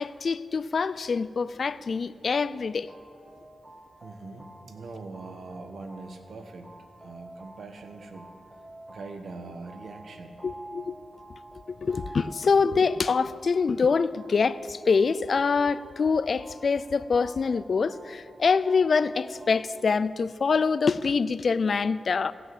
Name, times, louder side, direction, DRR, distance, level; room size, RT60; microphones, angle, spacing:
voice 1, 0.0-2.9 10.4-11.0 11.7-22.3, left 5 dB, 60° left, 0.4 m, -25 dB
sound 1, 2.6-20.0, right 1 dB, 20° right, 1.6 m, -49 dB
voice 2, 4.0-6.7 7.0-8.3 8.9-10.4, right 3 dB, 75° right, 1.2 m, -42 dB
16.0 x 5.8 x 7.8 m
cardioid pair, 70°, 0 cm